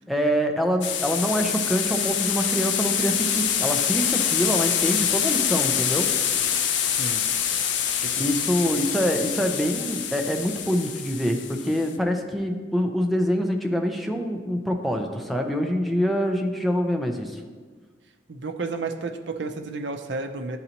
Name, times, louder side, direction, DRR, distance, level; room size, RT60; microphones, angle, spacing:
voice 1, 0.1-6.4 8.2-17.4, equal, ahead, 3 dB, 0.5 m, -25 dB
sound 1, 0.8-11.9, left 8 dB, 70° left, 0.5 m, -25 dB
voice 2, 6.9-7.2 8.0-8.3 18.3-20.6, right 3 dB, 70° right, 6 dB, 0.6 m, -32 dB
11.0 x 4.0 x 2.9 m, 1.5 s
head